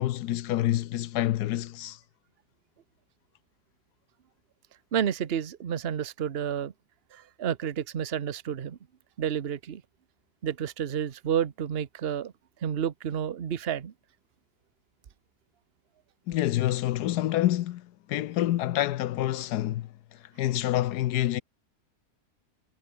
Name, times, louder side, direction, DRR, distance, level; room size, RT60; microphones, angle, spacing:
voice 1, 0.0-2.0 16.3-21.4, left 14 dB, 80° left, 1.2 m, -27 dB
voice 2, 4.9-6.7 7.1-8.8 9.2-9.8 10.4-12.3 12.6-13.9, right 9 dB, 45° right, 1.1 m, -30 dB
omnidirectional pair, 1.7 m